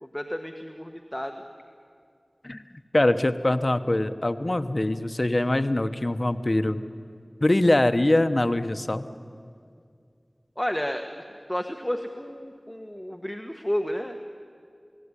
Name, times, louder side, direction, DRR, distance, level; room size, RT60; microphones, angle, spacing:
voice 1, 0.0-1.4 10.6-11.2 11.5-14.2, equal, 15° left, 5 dB, 1.4 m, -31 dB
voice 2, 2.9-6.8 7.4-9.1, left 1 dB, 50° left, 9 dB, 1.1 m, -23 dB
29.0 x 18.5 x 9.9 m, 2.3 s
wide cardioid pair, 45°, 0 cm